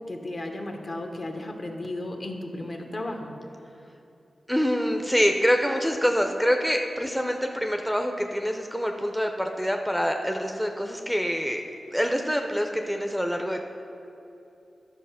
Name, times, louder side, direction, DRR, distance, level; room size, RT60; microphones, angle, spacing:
voice 1, 0.1-3.3, left 1 dB, 45° left, 3 dB, 1.0 m, -34 dB
voice 2, 4.5-11.6 11.9-13.6, equal, ahead, 4 dB, 0.5 m, -25 dB
11.0 x 4.5 x 5.7 m, 2.9 s
cardioid pair, 65°, 0 cm